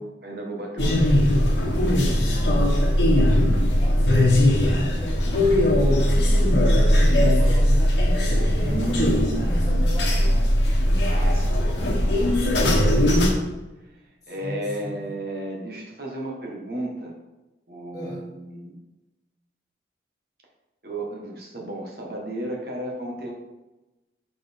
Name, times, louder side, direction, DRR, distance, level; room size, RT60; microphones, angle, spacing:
voice 1, 0.0-1.5 8.5-9.3 11.0-11.6 12.2-13.4 13.8-13.9 14.3-17.1 17.7-18.7 20.8-23.3, right 1 dB, 55° right, -1 dB, 1.3 m, -33 dB
sound 1, 0.8-13.3, left 1 dB, 90° left, 1.1 m, -19 dB
voice 2, 2.2-6.5 6.8-7.9 8.5-10.3 14.4-15.0 17.9-18.3, equal, 20° left, -7 dB, 1.3 m, -36 dB
6.5 x 4.2 x 3.5 m, 1.1 s
head